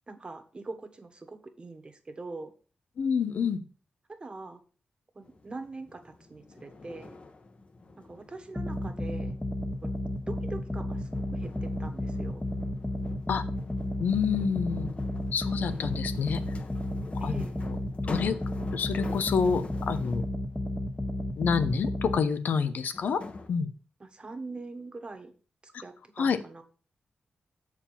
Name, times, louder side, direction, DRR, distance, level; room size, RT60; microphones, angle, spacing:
voice 1, 0.1-2.5 4.1-4.6 5.1-7.2 8.0-9.4 9.8-9.9 10.3-12.4 17.2-17.6 24.0-25.3 25.6-26.6, right 3 dB, 35° right, 7 dB, 1.4 m, -43 dB
voice 2, 3.0-3.6 13.3-13.4 14.0-14.9 15.3-16.4 17.2-17.4 18.0-18.4 18.7-20.2 21.4-23.2 23.5-23.7 26.2-26.4, left 6 dB, 85° left, 11 dB, 0.8 m, -27 dB
sound 1, 5.2-20.4 22.1-22.2 22.9-23.5, left 3 dB, 45° left, 1.1 m, -45 dB
sound 2, 8.5-22.2, left 1 dB, 10° left, 1.0 m, -33 dB
7.1 x 5.0 x 5.6 m, 0.38 s
cardioid pair, 85°, 3 cm